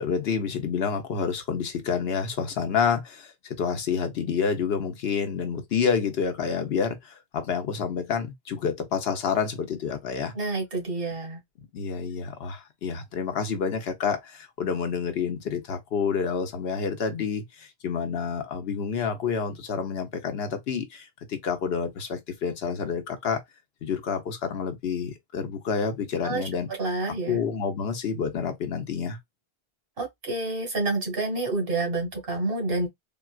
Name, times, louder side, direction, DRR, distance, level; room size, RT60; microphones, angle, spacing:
voice 1, 0.0-10.3 11.7-23.4 23.8-26.7 27.3-29.2, left 6 dB, 80° left, 1.0 m, -28 dB
voice 2, 10.3-11.4 26.2-26.4 26.8-27.4 30.0-32.9, right 2 dB, 70° right, 1.5 m, -28 dB
3.7 x 2.3 x 2.3 m
omnidirectional pair, 1.0 m